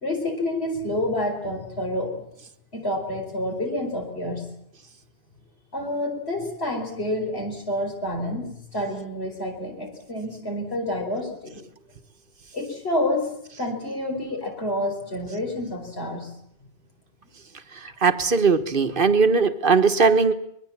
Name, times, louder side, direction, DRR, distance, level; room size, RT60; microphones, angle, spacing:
voice 1, 0.0-2.3 2.7-4.5 5.7-11.6 12.5-16.3, left 1 dB, 65° left, 2 dB, 4.9 m, -28 dB
voice 2, 18.0-20.3, right 4 dB, 50° right, 9 dB, 1.5 m, -19 dB
24.5 x 22.0 x 7.4 m, 0.75 s
omnidirectional pair, 1.1 m